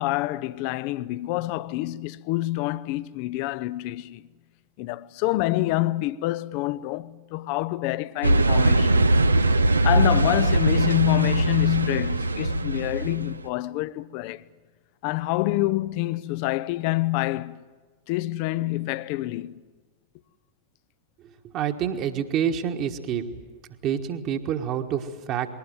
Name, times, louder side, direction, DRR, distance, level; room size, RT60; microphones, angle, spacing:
voice 1, 0.0-4.2 4.8-9.1 9.8-14.4 15.0-17.6 18.1-19.5, left 18 dB, 45° left, 0.6 m, -27 dB
sound 1, 8.2-13.4, right 2 dB, 80° right, 0.6 m, -21 dB
voice 2, 21.5-23.3 23.8-25.5, right 9 dB, 35° right, 1.5 m, -27 dB
21.0 x 19.0 x 9.3 m
figure-of-eight pair, 90°, 0 cm